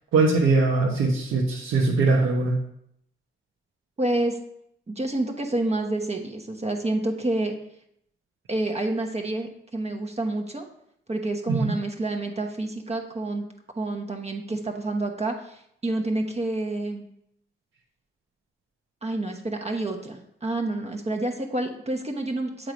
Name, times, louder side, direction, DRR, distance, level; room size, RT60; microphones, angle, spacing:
voice 1, 0.1-2.6 11.5-11.7, right 3 dB, 85° right, -4 dB, 1.0 m, -21 dB
voice 2, 4.0-4.4 4.9-7.5 8.5-10.6 11.1-13.4 13.8-17.0 19.0-22.7, right 2 dB, 30° right, 3 dB, 1.0 m, -28 dB
7.5 x 3.2 x 5.1 m, 0.73 s
supercardioid pair, 50°, 21 cm